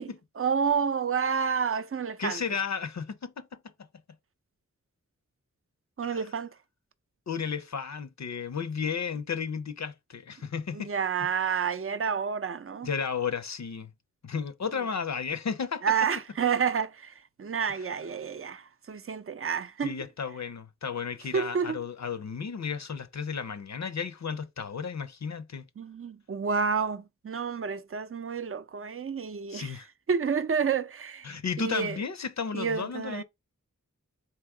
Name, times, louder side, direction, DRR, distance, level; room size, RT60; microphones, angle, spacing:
voice 1, 0.0-2.4 6.0-6.5 10.7-12.9 15.8-20.0 21.3-21.8 25.8-32.0 32.5-33.2, right 6 dB, 45° right, 0.5 m, -30 dB
voice 2, 2.2-3.5 6.0-6.2 7.3-10.9 12.8-13.9 14.2-15.8 19.8-25.7 29.5-29.9 31.2-33.2, left 6 dB, 55° left, 0.5 m, -33 dB
3.5 x 2.8 x 4.7 m
wide cardioid pair, 45°, 32 cm